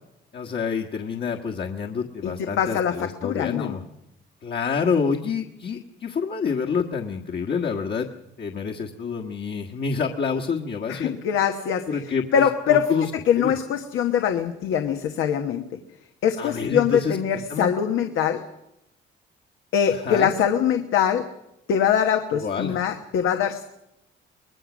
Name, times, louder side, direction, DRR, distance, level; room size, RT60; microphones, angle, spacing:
voice 1, 0.3-3.8 4.4-8.1 8.4-11.2 11.9-13.1 13.4-13.5 16.4-17.7 19.9-20.3 22.3-22.8, left 5 dB, 55° left, 1 dB, 1.6 m, -28 dB
voice 2, 2.2-3.7 10.9-11.8 12.3-12.9 13.3-15.6 16.2-18.4 19.7-21.2 21.7-23.6, left 8 dB, 85° left, 5 dB, 1.3 m, -23 dB
24.0 x 20.0 x 6.2 m, 0.87 s
cardioid pair, 90°, 20 cm